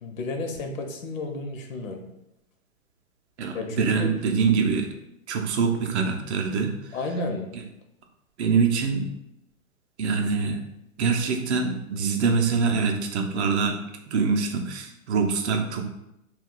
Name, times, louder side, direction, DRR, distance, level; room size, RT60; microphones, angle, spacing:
voice 1, 0.0-2.0 3.5-4.1 6.9-7.5, left 2 dB, 70° left, 4 dB, 0.7 m, -32 dB
voice 2, 3.4-4.9 5.3-6.7 8.4-9.1 10.0-10.6 11.0-13.8 14.1-15.8, right 5 dB, 55° right, 3 dB, 0.5 m, -24 dB
2.3 x 2.2 x 3.7 m, 0.85 s
hypercardioid pair, 150°, 41 cm